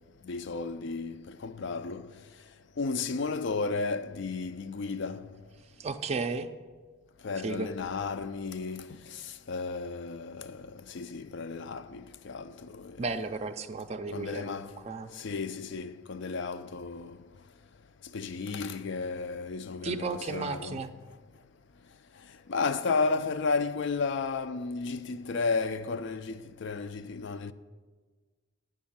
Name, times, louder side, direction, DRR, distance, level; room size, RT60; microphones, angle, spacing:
voice 1, 0.2-2.1 2.8-5.3 7.2-9.2 9.5-13.0 14.1-14.8 15.2-17.2 18.1-20.9 22.5-27.5, left 4 dB, 60° left, 0.4 m, -33 dB
voice 2, 5.8-6.5 7.4-7.7 13.0-15.1 19.8-20.9, right 4 dB, 35° right, 0.4 m, -34 dB
9.4 x 6.1 x 7.2 m
head